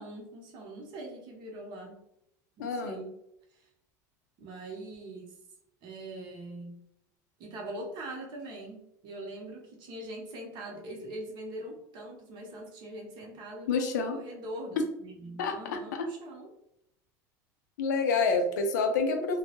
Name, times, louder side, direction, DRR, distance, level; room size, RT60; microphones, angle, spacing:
voice 1, 0.0-2.0 2.6-3.1 3.5-3.7 4.4-5.4 5.8-6.8 7.4-16.5, right 1 dB, 55° right, 0 dB, 0.7 m, -42 dB
voice 2, 2.6-3.0 13.7-14.2 15.4-16.0 17.8-19.4, left 4 dB, 90° left, 5 dB, 0.5 m, -28 dB
2.2 x 2.0 x 2.8 m, 0.77 s
supercardioid pair, 105°, 9 cm